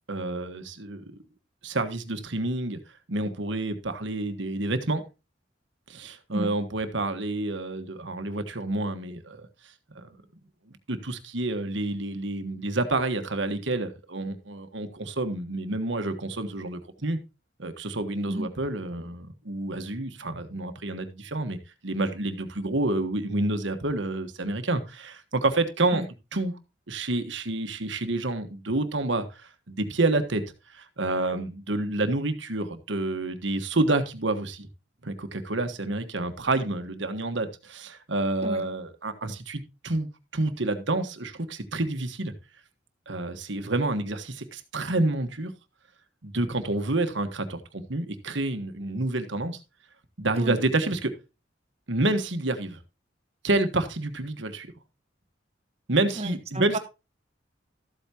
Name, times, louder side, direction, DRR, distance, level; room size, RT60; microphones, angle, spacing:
voice 1, 0.1-1.0 1.6-2.8 3.1-5.0 5.9-9.5 9.9-10.2 10.7-17.2 17.6-21.6 21.8-26.0 26.3-26.5 26.9-30.4 30.7-34.7 35.0-42.3 43.1-45.5 46.2-49.6 50.2-51.1 51.9-52.8 53.4-54.7 55.9-56.8, right 2 dB, 75° right, 1.4 m, -28 dB
voice 2, 56.1-56.8, right 1 dB, 35° right, 1.1 m, -31 dB
13.5 x 8.3 x 2.9 m
head